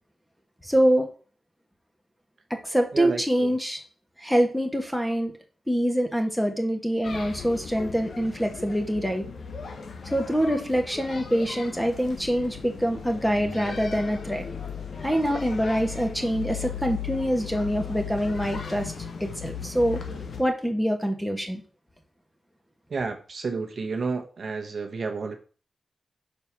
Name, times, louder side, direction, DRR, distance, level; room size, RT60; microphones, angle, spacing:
voice 1, 0.6-1.1 2.5-3.8 4.2-5.3 5.7-9.2 10.1-14.5 15.0-18.9 19.2-20.0 20.4-21.6, equal, ahead, 4 dB, 1.4 m, -25 dB
sound 1, 7.0-20.4, left 6 dB, 70° left, 1.0 m, -37 dB
voice 2, 22.9-25.3, right 4 dB, 60° right, 4 dB, 0.9 m, -30 dB
5.5 x 4.2 x 6.0 m, 0.39 s
wide cardioid pair, 100°, 0 cm